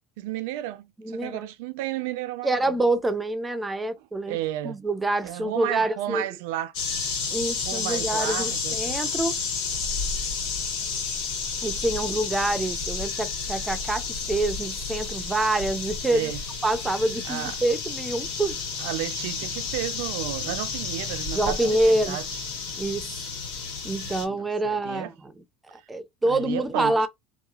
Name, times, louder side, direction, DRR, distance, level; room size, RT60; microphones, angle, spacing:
voice 1, 0.2-2.8 4.0-4.8 5.2-6.7 7.6-8.8 16.1-16.4 17.3-17.6 18.8-22.4 24.3-25.1 26.2-27.1, right 14 dB, 80° right, 0.4 m, -33 dB
voice 2, 1.0-1.5 2.4-4.4 4.6-6.2 7.3-9.4 11.6-14.0 14.3-16.3 16.6-18.6 21.3-22.2 22.8-23.3 23.8-25.1 25.7-27.1, right 2 dB, 10° right, 0.4 m, -26 dB
sound 1, 6.7-24.2, left 5 dB, 80° left, 1.5 m, -31 dB
2.8 x 2.3 x 2.3 m
cardioid pair, 160°, 0 cm